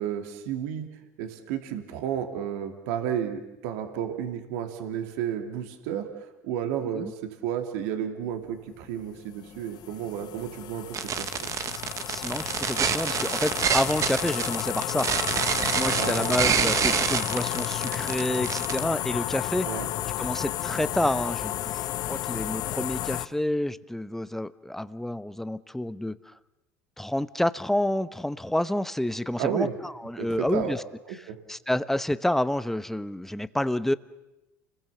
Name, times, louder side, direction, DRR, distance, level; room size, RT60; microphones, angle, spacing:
voice 1, 0.0-6.1 6.4-11.5 15.9-16.4 19.6-19.9 29.4-29.7 30.2-30.8 31.1-31.4, right 9 dB, 70° right, 6 dB, 2.7 m, -32 dB
sound 1, 8.8-23.3, left 13 dB, 55° left, 1.1 m, -32 dB
sound 2, 10.9-18.8, right 7 dB, 40° right, 1.4 m, -27 dB
voice 2, 12.1-19.8 20.2-26.2 27.0-30.8 31.5-33.9, left 1 dB, 5° left, 15 dB, 1.0 m, -29 dB
29.0 x 21.0 x 7.0 m, 0.98 s
hypercardioid pair, 75°, 8 cm